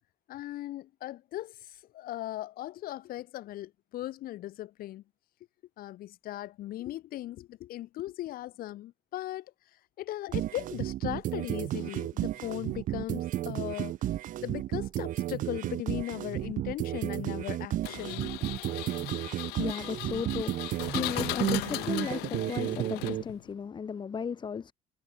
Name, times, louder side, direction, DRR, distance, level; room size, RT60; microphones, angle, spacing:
voice 1, 0.3-5.0 5.8-14.0 14.4-18.3, left 14 dB, 65° left, 2.3 m, -38 dB
sound 1, 10.3-23.2, right 13 dB, 55° right, 0.6 m, -33 dB
Engine, 17.8-23.5, left 25 dB, 85° left, 1.7 m, -37 dB
voice 2, 19.5-24.7, left 6 dB, 30° left, 0.8 m, -35 dB
cardioid pair, 100°, 16 cm